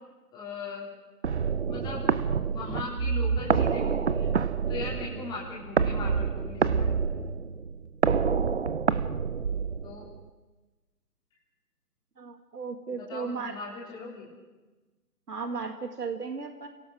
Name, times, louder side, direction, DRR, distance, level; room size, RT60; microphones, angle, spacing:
voice 1, 0.3-0.9 1.7-2.0 2.4-4.3 4.7-7.1 9.8-10.1 13.0-14.3, left 4 dB, 10° left, -4 dB, 3.5 m, -39 dB
sound 1, 1.2-10.2, right 6 dB, 45° right, 0.7 m, -27 dB
voice 2, 12.2-13.6 15.3-16.7, right 4 dB, 70° right, 6 dB, 2.0 m, -35 dB
30.0 x 17.5 x 6.2 m, 1.2 s
figure-of-eight pair, 155°, 49 cm